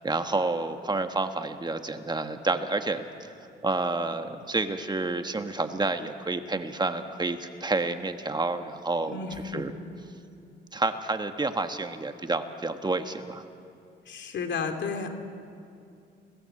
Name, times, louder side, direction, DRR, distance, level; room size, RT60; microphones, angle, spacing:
voice 1, 0.0-3.1 3.6-9.2 9.5-9.7 10.7-13.4, right 3 dB, 20° right, 7 dB, 1.4 m, -29 dB
voice 2, 9.1-9.6 14.1-15.1, left 5 dB, 65° left, 6 dB, 2.9 m, -32 dB
29.5 x 20.0 x 7.9 m, 2.5 s
cardioid pair, 90°, 20 cm